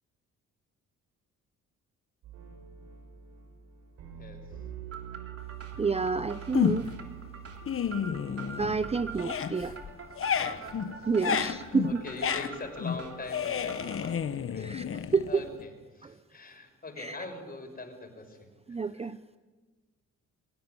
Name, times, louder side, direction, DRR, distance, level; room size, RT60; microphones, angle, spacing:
sound 1, 2.2-9.2, right 10 dB, 85° right, 4.9 m, -45 dB
voice 1, 4.2-4.6 7.8-8.1 10.3-10.8 11.2-11.5 11.8-19.1, left 2 dB, 30° left, 4 dB, 6.2 m, -43 dB
sound 2, 4.9-14.1, right 5 dB, 50° right, 3.3 m, -46 dB
voice 2, 5.8-6.9 8.4-9.7 11.1-12.0 14.6-14.8 15.1-15.4 16.0-16.1 17.0-17.2 18.7-19.2, right 5 dB, 20° right, 12 dB, 0.7 m, -29 dB
sound 3, 6.5-7.1 7.5-8.8 9.1-15.6, left 8 dB, 45° left, 1.2 m, -31 dB
24.0 x 17.0 x 9.8 m, 1.4 s
cardioid pair, 90°, 30 cm